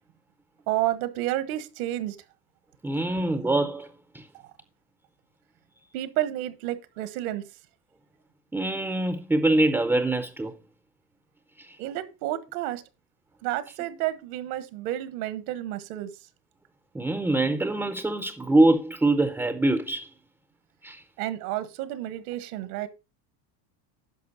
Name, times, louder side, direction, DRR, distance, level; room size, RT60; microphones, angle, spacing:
voice 1, 0.7-2.2 5.9-7.5 11.8-12.8 13.4-16.1 21.2-22.9, right 14 dB, 75° right, 1.4 m, -30 dB
voice 2, 2.8-3.9 4.1-4.3 8.5-10.5 11.6-11.8 16.9-20.1 20.8-21.0, right 2 dB, 5° right, 0.4 m, -24 dB
11.0 x 6.2 x 4.1 m
supercardioid pair, 140°, 45 cm